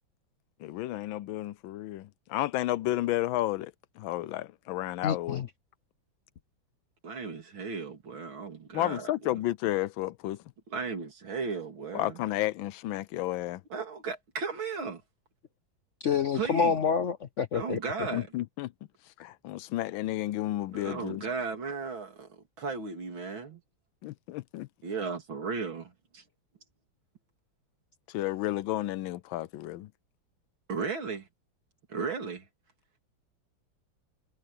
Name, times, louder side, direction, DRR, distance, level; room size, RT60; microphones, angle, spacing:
voice 1, 0.6-5.4 8.7-10.4 11.9-13.6 18.1-18.7 19.2-21.3 24.0-24.7 28.1-29.9, left 15 dB, 85° left, 1.4 m, -32 dB
voice 2, 5.0-5.5 16.0-17.8, left 6 dB, 65° left, 0.7 m, -27 dB
voice 3, 7.0-9.1 10.7-12.2 13.7-15.0 16.3-16.8 17.5-18.3 20.7-23.6 24.8-26.2 30.7-31.2 31.9-32.4, right 5 dB, 85° right, 3.7 m, -35 dB
omnidirectional pair, 2.1 m